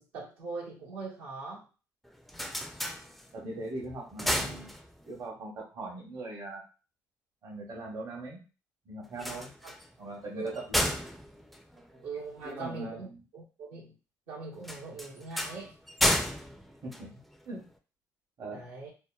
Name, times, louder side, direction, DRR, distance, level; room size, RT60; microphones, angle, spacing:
voice 1, 0.0-1.7 9.6-9.7 10.3-10.8 12.0-14.0 14.3-15.7 18.5-18.9, right 4 dB, 85° right, -6 dB, 1.1 m, -41 dB
sound 1, 2.0-3.6 4.0-5.3 9.1-12.5 14.6-17.7, equal, ahead, 0.4 m, -33 dB
voice 2, 3.3-4.7 5.0-6.6 7.4-8.4 8.9-9.5 10.0-11.2 11.9-12.0 12.4-13.2 16.8-17.1 17.5-17.6 18.4-18.6, right 2 dB, 60° right, -2 dB, 1.0 m, -40 dB
2.8 x 2.0 x 2.2 m, 0.33 s
supercardioid pair, 65°, 8 cm